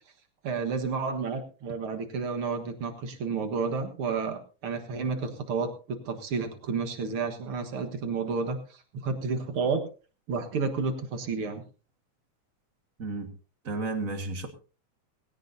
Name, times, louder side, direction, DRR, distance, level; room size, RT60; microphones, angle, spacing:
voice 1, 0.4-8.6 8.9-9.8 10.3-11.6, right 4 dB, 50° right, 2.0 m, -31 dB
voice 2, 13.0-13.3 13.6-14.5, right 3 dB, 35° right, 1.5 m, -32 dB
19.0 x 16.5 x 2.7 m
omnidirectional pair, 3.5 m